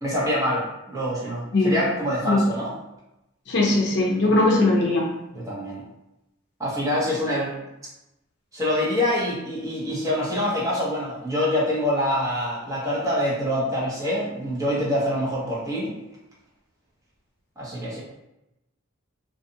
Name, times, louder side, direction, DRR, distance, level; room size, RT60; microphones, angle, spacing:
voice 1, 0.0-2.8 5.3-5.8 6.6-7.5 8.5-15.9 17.6-18.0, left 1 dB, 15° right, -7 dB, 0.9 m, -25 dB
voice 2, 3.5-5.0, left 2 dB, 60° left, -3 dB, 0.5 m, -20 dB
2.5 x 2.4 x 2.7 m, 0.91 s
head